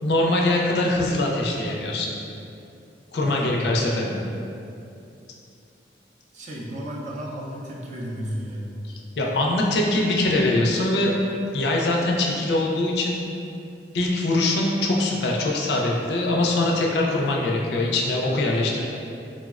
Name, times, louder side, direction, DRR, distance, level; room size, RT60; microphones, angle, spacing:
voice 1, 0.0-2.1 3.1-4.3 9.2-11.1 11.5-13.2 13.9-18.9, left 2 dB, 65° left, -2 dB, 0.4 m, -22 dB
voice 2, 3.2-3.6 6.3-8.8, equal, 40° right, -4 dB, 0.4 m, -33 dB
3.9 x 2.0 x 2.3 m, 2.7 s
head